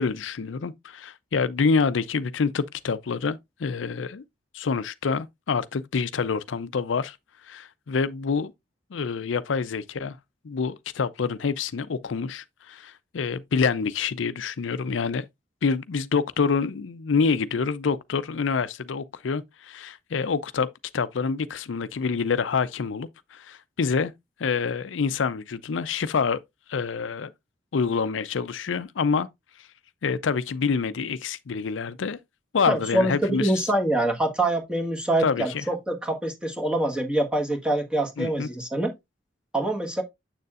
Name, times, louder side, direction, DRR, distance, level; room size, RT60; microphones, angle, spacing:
voice 1, 0.0-4.2 4.5-7.2 7.5-8.5 8.9-10.2 10.4-15.2 15.6-20.7 20.9-24.1 24.4-26.4 26.7-27.3 27.7-29.3 30.0-32.2 32.5-33.6 35.2-35.6 38.2-38.5, left 5 dB, 90° left, 0.5 m, -27 dB
voice 2, 32.7-38.9 39.5-40.0, right 1 dB, 5° right, 1.4 m, -25 dB
7.7 x 6.6 x 2.4 m
head